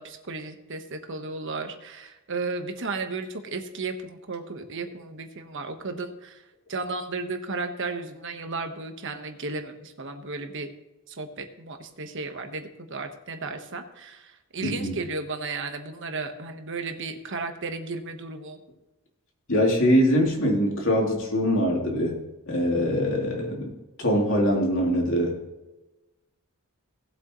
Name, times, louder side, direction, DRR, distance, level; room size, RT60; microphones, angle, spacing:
voice 1, 0.0-6.4 6.7-10.7 11.1-18.6, right 3 dB, 60° right, 6 dB, 1.3 m, -34 dB
voice 2, 14.6-15.0 19.5-22.2 22.5-23.7 24.0-25.4, equal, 60° left, -1 dB, 3.1 m, -23 dB
18.5 x 8.0 x 3.1 m, 1.0 s
head